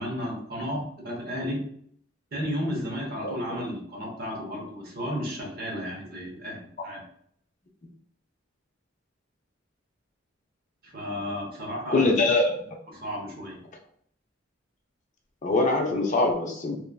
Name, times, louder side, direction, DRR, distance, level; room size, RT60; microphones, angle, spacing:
voice 1, 0.0-1.6 2.3-7.0 10.8-12.3 12.9-13.6, equal, 50° right, -1 dB, 0.9 m, -33 dB
voice 2, 11.9-12.5 15.4-16.8, left 2 dB, 40° left, 1 dB, 0.4 m, -23 dB
3.0 x 2.4 x 2.2 m, 0.63 s
head